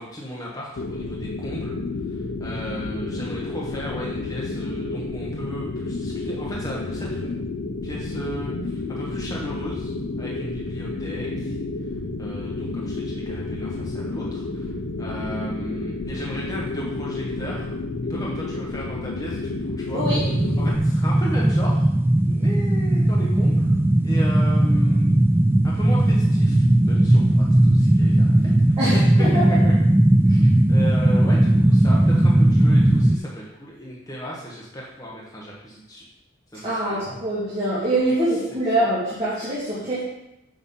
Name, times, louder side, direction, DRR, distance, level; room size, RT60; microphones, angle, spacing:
voice 1, 0.0-1.8 2.1-7.4 7.8-11.5 12.2-17.7 18.1-20.0 20.6-21.9 22.3-23.8 24.0-25.1 25.6-28.5 28.8-29.0 29.5-29.8 30.2-36.0 36.5-37.0 38.3-38.4, equal, 15° left, -5 dB, 1.2 m, -35 dB
sound 1, 0.8-20.8, left 3 dB, 75° left, 0.6 m, -30 dB
voice 2, 19.9-20.3 28.8-29.5 36.6-40.0, right 1 dB, 30° right, -11 dB, 2.6 m, -24 dB
sound 2, 20.0-33.2, right 1 dB, 10° right, 0.3 m, -18 dB
7.1 x 6.4 x 5.5 m, 0.90 s
head